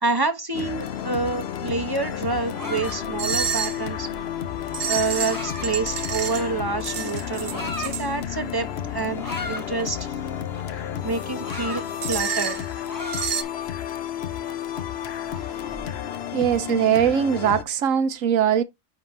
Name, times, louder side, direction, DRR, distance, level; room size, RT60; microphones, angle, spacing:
voice 1, 0.0-4.1 4.9-10.1 11.0-12.7 13.6-13.7, right 3 dB, 20° right, 1.0 m, -28 dB
sound 1, 0.5-17.6, left 9 dB, 55° left, 0.9 m, -32 dB
sound 2, 2.3-6.5 7.2-8.0 9.2-9.9 11.1-12.5 12.8-13.7 14.2-15.8, left 2 dB, 15° left, 1.1 m, -37 dB
sound 3, 3.2-3.8 4.7-6.5 6.8-8.1 12.0-12.7 13.1-13.4, right 7 dB, 55° right, 0.9 m, -29 dB
voice 2, 16.3-18.6, right 8 dB, 90° right, 1.2 m, -21 dB
9.7 x 3.7 x 3.2 m
omnidirectional pair, 1.3 m